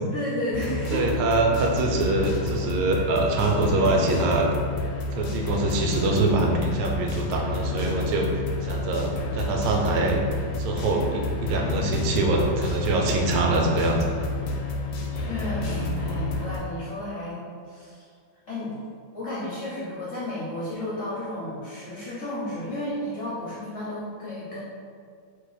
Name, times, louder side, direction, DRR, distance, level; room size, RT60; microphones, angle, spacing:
voice 1, 0.1-1.1 1.7-1.8 15.1-18.1 18.5-18.7 19.1-24.6, left 1 dB, 55° left, -9 dB, 0.9 m, -33 dB
sound 1, 0.5-16.6, left 2 dB, 70° left, 1.2 m, -29 dB
voice 2, 0.9-4.5 5.1-10.2 10.6-14.3, right 2 dB, 80° right, 0 dB, 1.4 m, -24 dB
4.0 x 2.6 x 3.9 m, 2.1 s
omnidirectional pair, 2.3 m